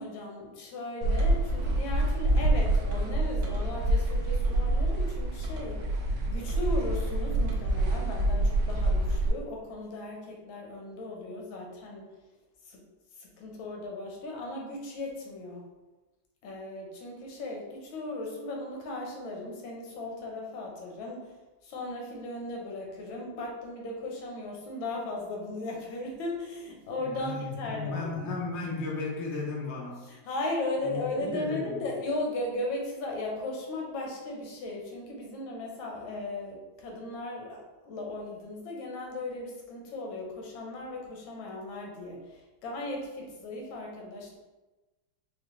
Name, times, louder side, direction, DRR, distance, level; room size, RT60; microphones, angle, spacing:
voice 1, 0.0-5.9 6.3-12.1 12.6-12.8 13.2-15.7 16.4-28.3 30.0-44.4, left 2 dB, 90° left, -1 dB, 1.6 m, -37 dB
sound 1, 1.0-9.3, right 1 dB, 85° right, 1.4 m, -27 dB
voice 2, 27.0-30.1 30.8-31.8, left 3 dB, 50° left, -3 dB, 0.9 m, -35 dB
4.9 x 2.2 x 3.1 m, 1.1 s
omnidirectional pair, 2.1 m